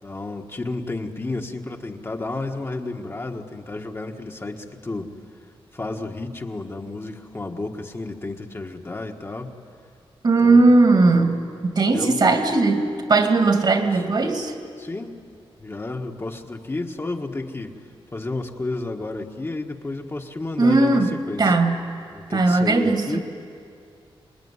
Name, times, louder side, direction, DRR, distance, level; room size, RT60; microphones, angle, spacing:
voice 1, 0.0-5.1 5.7-9.5 10.4-10.7 11.9-12.2 13.9-14.0 14.8-15.2 15.6-17.8 18.1-21.0 21.3-21.5 22.1-23.2, left 2 dB, 25° left, 3 dB, 1.5 m, -31 dB
voice 2, 10.2-14.5 20.6-21.8 22.3-23.2, right 3 dB, 50° right, 6 dB, 2.4 m, -18 dB
26.5 x 21.0 x 9.7 m, 2.3 s
wide cardioid pair, 110°, 10 cm